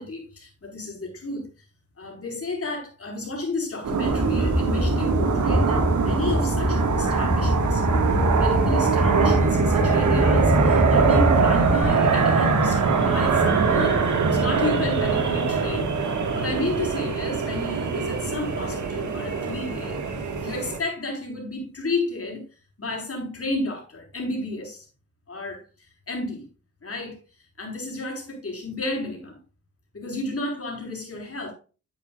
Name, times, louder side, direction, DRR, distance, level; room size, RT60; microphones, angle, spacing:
voice 1, 0.0-1.5 2.0-7.8 8.1-15.9 16.3-20.0 20.4-22.4 22.8-24.9 25.3-25.6 26.1-26.5 26.8-27.2 27.6-29.4 29.9-31.5, left 2 dB, 50° left, 5.1 m, -32 dB
sound 1, 3.8-20.8, right 5 dB, 85° right, 1.9 m, -22 dB
sound 2, 4.0-11.8, equal, 5° left, 1.4 m, -25 dB
11.0 x 8.7 x 2.5 m
cardioid pair, 65°, 29 cm